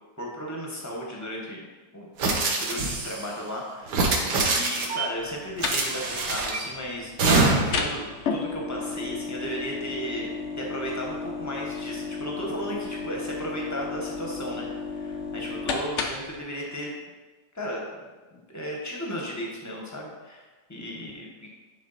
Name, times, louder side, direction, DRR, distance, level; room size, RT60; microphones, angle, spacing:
voice 1, 0.2-1.6 1.9-2.1 2.4-16.9 17.5-18.0 18.3-21.5, equal, 15° left, -1 dB, 0.8 m, -35 dB
sound 1, 2.2-3.2 3.9-5.0 5.6-6.6 7.2-7.8, right 3 dB, 65° right, 1.5 m, -24 dB
sound 2, 5.2-16.4, left 4 dB, 70° left, 0.7 m, -34 dB
9.4 x 3.8 x 4.1 m, 1.3 s
omnidirectional pair, 2.1 m